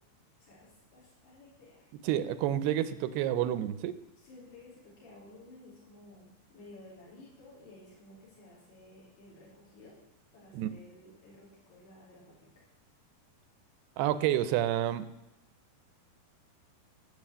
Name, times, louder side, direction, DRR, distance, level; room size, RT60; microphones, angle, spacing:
voice 1, 0.4-1.9 4.2-10.0 10.3-12.7, left 2 dB, 70° left, -5 dB, 6.0 m, -54 dB
voice 2, 2.0-4.0 10.5-10.7 14.0-15.1, right 12 dB, 80° right, 14 dB, 2.6 m, -29 dB
17.0 x 7.1 x 8.6 m, 0.90 s
omnidirectional pair, 4.9 m